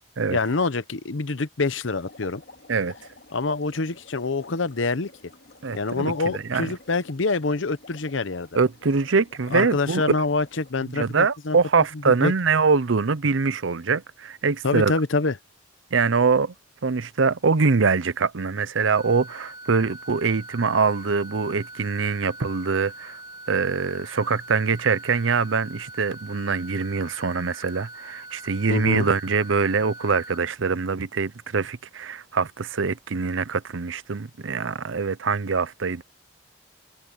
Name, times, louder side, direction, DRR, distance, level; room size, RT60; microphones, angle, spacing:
voice 1, 0.3-2.4 3.3-5.1 5.7-8.5 9.5-11.6 12.1-12.3 14.6-15.4 28.7-29.1, left 3 dB, 80° left, 0.9 m, -26 dB
sound 1, 1.9-10.7, left 2 dB, 60° left, 2.4 m, -50 dB
voice 2, 5.6-6.7 8.5-10.0 10.9-14.9 15.9-16.5 16.8-23.2 23.5-36.0, right 4 dB, 80° right, 0.7 m, -23 dB
sound 2, 18.9-30.4, right 2 dB, 25° right, 3.4 m, -42 dB
head